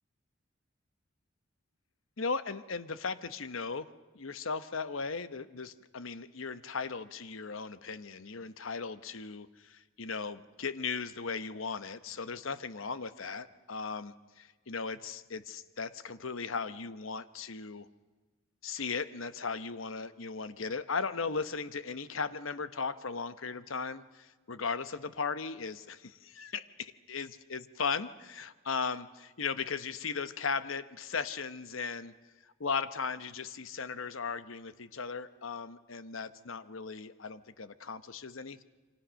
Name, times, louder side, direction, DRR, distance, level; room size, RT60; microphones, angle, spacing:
voice 1, 2.2-3.9 4.1-17.9 18.6-28.1 28.7-32.1 32.6-38.6, left 5 dB, 85° left, 13 dB, 1.0 m, -37 dB
28.0 x 24.5 x 6.4 m, 1.3 s
head